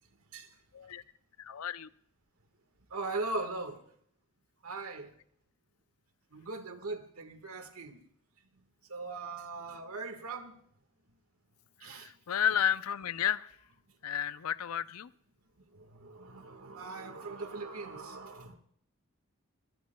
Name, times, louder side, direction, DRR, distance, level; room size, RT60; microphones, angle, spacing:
voice 1, 1.4-1.9 11.8-13.5 14.0-15.1, left 9 dB, 90° left, 0.5 m, -32 dB
voice 2, 2.9-3.8 4.6-5.1 6.3-8.0 8.9-10.6 11.8-12.1 15.7-18.6, right 3 dB, 85° right, 1.6 m, -39 dB
24.0 x 17.0 x 2.3 m
head